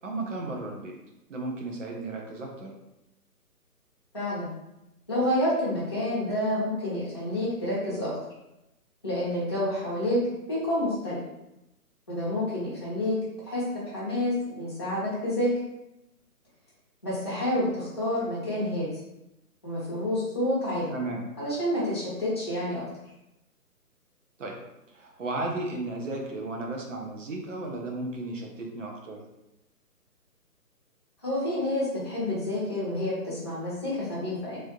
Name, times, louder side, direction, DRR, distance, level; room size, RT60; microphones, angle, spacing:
voice 1, 0.0-0.9 1.3-2.7 20.9-21.3 24.4-24.6 24.9-29.2, right 2 dB, 55° right, 0 dB, 0.7 m, -34 dB
voice 2, 4.1-4.5 5.1-8.1 9.0-10.2 10.5-11.2 12.1-13.2 13.4-15.5 17.0-18.9 19.6-20.9 21.4-22.8 31.2-34.6, left 1 dB, 20° left, -10 dB, 0.6 m, -28 dB
3.3 x 2.4 x 2.8 m, 0.91 s
hypercardioid pair, 165°, 46 cm